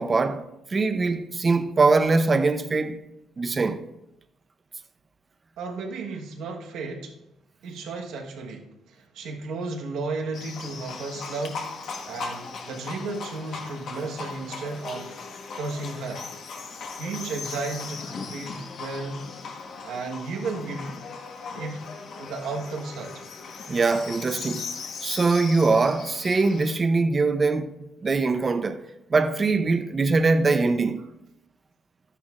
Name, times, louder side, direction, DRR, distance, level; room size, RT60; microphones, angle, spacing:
voice 1, 0.0-3.0 3.4-3.8 23.7-24.7 25.0-28.8 29.1-31.0, right 3 dB, 35° right, 0.7 m, -22 dB
voice 2, 5.6-7.1 7.6-11.7 12.1-15.2 15.5-16.3 17.0-19.2 19.8-21.0 21.5-21.9 22.2-23.2, right 3 dB, 85° right, 1.3 m, -34 dB
Livestock farm animals working animals, 10.3-26.8, left 4 dB, 65° left, 1.3 m, -38 dB
12.5 x 9.9 x 2.5 m
cardioid pair, 90°, 0 cm